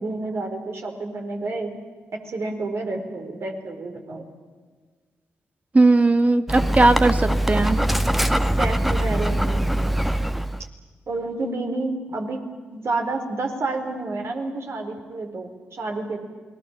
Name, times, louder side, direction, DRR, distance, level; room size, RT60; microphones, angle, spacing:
voice 1, 0.0-1.7 2.2-4.3 8.6-9.6 11.1-12.4 12.7-16.2, right 2 dB, 60° right, 4 dB, 4.4 m, -29 dB
voice 2, 5.7-7.8, right 2 dB, 30° right, 9 dB, 1.8 m, -18 dB
Dog, 6.5-10.6, right 1 dB, ahead, 1.2 m, -22 dB
28.5 x 21.0 x 7.4 m, 1.4 s
hypercardioid pair, 45°, 5 cm